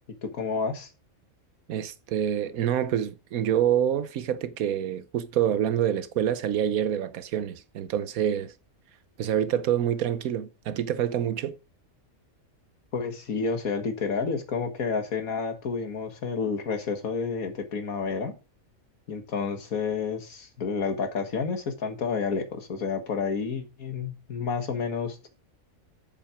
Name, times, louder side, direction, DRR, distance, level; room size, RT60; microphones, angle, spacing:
voice 1, 0.2-0.9 12.9-18.3 19.1-25.3, left 5 dB, 90° left, 2.1 m, -30 dB
voice 2, 1.7-8.5 9.2-11.5, right 10 dB, 90° right, 1.2 m, -27 dB
7.7 x 7.4 x 5.0 m
omnidirectional pair, 1.4 m